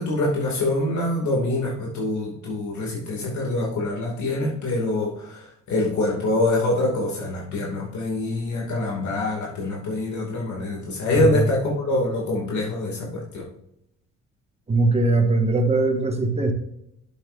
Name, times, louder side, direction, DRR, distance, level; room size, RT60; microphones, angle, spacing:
voice 1, 0.0-13.4, left 2 dB, 70° left, -3 dB, 2.6 m, -25 dB
voice 2, 11.1-11.4 14.7-16.5, right 2 dB, 20° right, 4 dB, 1.7 m, -20 dB
8.9 x 7.8 x 2.7 m, 0.77 s
cardioid pair, 90°, 30 cm